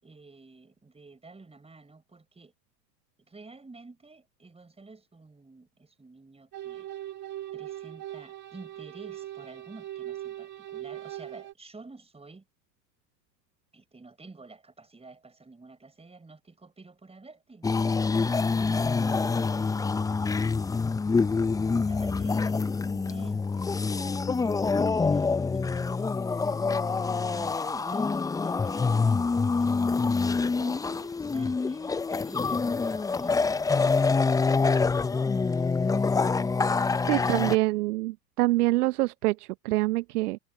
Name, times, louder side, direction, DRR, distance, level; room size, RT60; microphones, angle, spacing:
voice 1, 0.0-2.5 3.3-6.9 7.5-12.5 13.7-20.6 21.6-23.7 24.0-26.8 27.3-30.0 30.6-34.5 34.9-35.6 36.9-37.6 38.6-38.7, right 3 dB, 10° right, 5.0 m, -50 dB
sound 1, 6.5-11.5, right 13 dB, 35° right, 3.9 m, -40 dB
sound 2, 17.6-37.6, left 4 dB, 5° left, 0.6 m, -26 dB
voice 2, 37.1-40.4, right 19 dB, 65° right, 1.0 m, -25 dB
hypercardioid pair, 85°, 50 cm